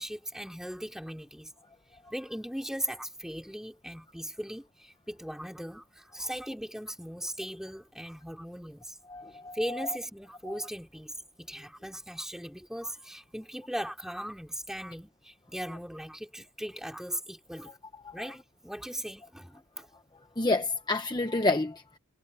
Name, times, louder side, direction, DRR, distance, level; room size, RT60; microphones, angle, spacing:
voice 1, 0.0-1.5 2.1-8.9 9.5-17.7 18.1-19.9, equal, ahead, 3.6 m, -38 dB
voice 2, 9.1-9.9 10.4-10.6 18.0-18.2 20.4-22.0, left 2 dB, 20° left, 0.9 m, -29 dB
head